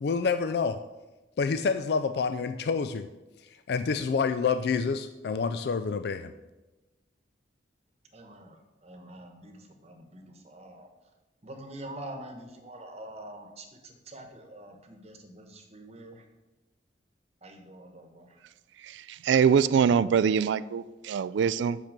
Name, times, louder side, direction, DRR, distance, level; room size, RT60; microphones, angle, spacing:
voice 1, 0.0-0.8 1.4-3.1 3.7-6.3, left 5 dB, 60° left, 0.3 m, -28 dB
voice 2, 8.1-10.9 11.4-16.2 17.4-18.4, right 1 dB, 35° right, 1.1 m, -45 dB
voice 3, 18.8-21.8, right 7 dB, 75° right, 0.3 m, -24 dB
6.1 x 5.8 x 6.6 m
head